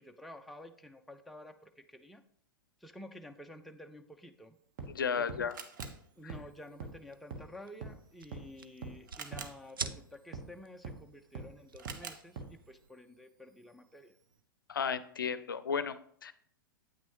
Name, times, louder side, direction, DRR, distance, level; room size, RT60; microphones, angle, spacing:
voice 1, 0.0-2.2 2.8-4.6 5.2-5.5 6.2-14.1, left 1 dB, ahead, 5 dB, 0.3 m, -51 dB
Camera, 4.5-14.4, right 6 dB, 60° right, 0.8 m, -53 dB
sound 1, 4.8-4.9 5.3-5.4 5.8-5.9 6.3-6.4 6.8-6.9 7.3-7.4 7.8-7.9 8.3-8.4 8.8-8.9 9.3-9.4 9.8-9.9 10.3-10.4 10.8-10.9 11.4-11.5 11.9-12.0 12.4-12.5, right 4 dB, 40° right, 1.2 m, -41 dB
voice 2, 4.9-5.5 14.7-16.0 16.2-16.3, left 6 dB, 70° left, 15 dB, 0.5 m, -33 dB
sound 2, 6.2-12.9, right 5 dB, 75° right, 0.4 m, -49 dB
8.5 x 6.0 x 3.0 m, 0.63 s
figure-of-eight pair, 100°, 12 cm